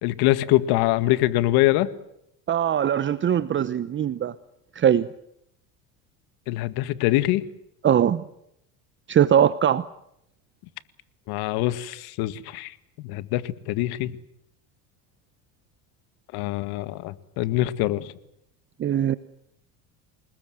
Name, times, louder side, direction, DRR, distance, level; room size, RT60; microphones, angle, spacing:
voice 1, 0.0-1.9 6.5-7.5 11.3-14.1 16.3-18.1, left 16 dB, 70° left, 2.0 m, -24 dB
voice 2, 2.5-4.3 4.7-5.1 7.8-8.2 9.1-9.9 18.8-19.2, right 9 dB, 30° right, 1.0 m, -21 dB
29.0 x 20.5 x 7.8 m
supercardioid pair, 115°, 38 cm